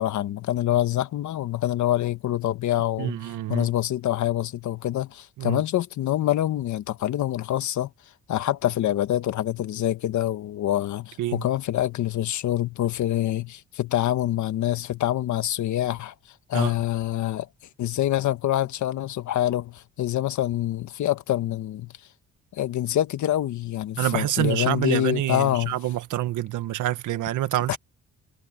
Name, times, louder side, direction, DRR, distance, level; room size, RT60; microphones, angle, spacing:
voice 1, 0.0-3.2 3.5-7.9 8.3-16.1 16.5-17.5 17.8-21.9 22.5-25.7 27.7-27.8, left 13 dB, 75° left, 1.5 m, -26 dB
voice 2, 3.0-3.7 5.4-5.6 11.2-11.5 16.5-16.7 24.0-27.8, right 14 dB, 80° right, 1.7 m, -27 dB
cardioid pair, 90°, 30 cm